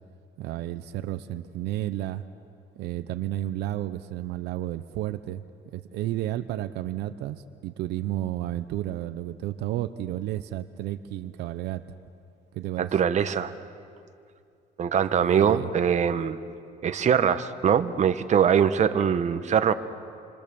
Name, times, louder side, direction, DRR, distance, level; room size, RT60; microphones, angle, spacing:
voice 1, 0.4-2.2 2.8-5.4 5.7-11.8 12.5-13.0 15.2-15.7, right 13 dB, 80° right, 11 dB, 0.8 m, -32 dB
voice 2, 12.8-13.5 14.8-16.4 16.8-19.7, right 8 dB, 45° right, 10 dB, 1.2 m, -22 dB
27.5 x 25.5 x 7.0 m, 2.4 s
cardioid pair, 110°, 17 cm